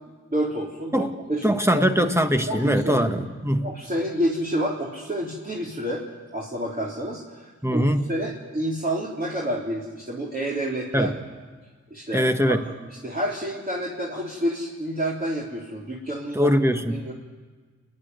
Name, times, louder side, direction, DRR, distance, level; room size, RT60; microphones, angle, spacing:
voice 1, 0.3-2.1 2.5-3.1 3.6-6.0 6.3-11.1 11.9-12.6 12.8-16.6 16.9-17.1, right 1 dB, 30° right, -6 dB, 3.8 m, -29 dB
voice 2, 1.4-3.7 7.6-8.0 10.9-11.1 12.1-12.6 16.3-17.0, equal, 10° right, 6 dB, 1.6 m, -22 dB
28.5 x 10.5 x 9.5 m, 1.4 s
cardioid pair, 60°, 29 cm